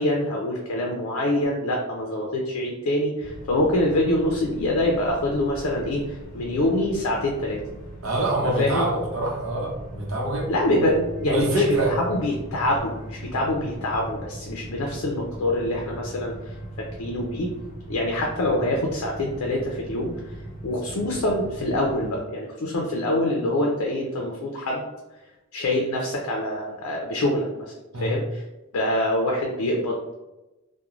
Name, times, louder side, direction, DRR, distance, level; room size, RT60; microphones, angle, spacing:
voice 1, 0.0-7.6 8.4-8.9 10.5-17.5 17.9-20.1 20.6-24.9 25.5-27.7 28.0-28.4 28.7-30.1, left 1 dB, 85° left, 0 dB, 0.4 m, -25 dB
sound 1, 3.2-22.2, right 1 dB, 40° left, 0.6 m, -39 dB
voice 2, 8.0-10.5 11.3-12.0 27.9-28.2, right 1 dB, 70° right, -1 dB, 0.7 m, -25 dB
3.0 x 2.1 x 2.4 m, 1.0 s
head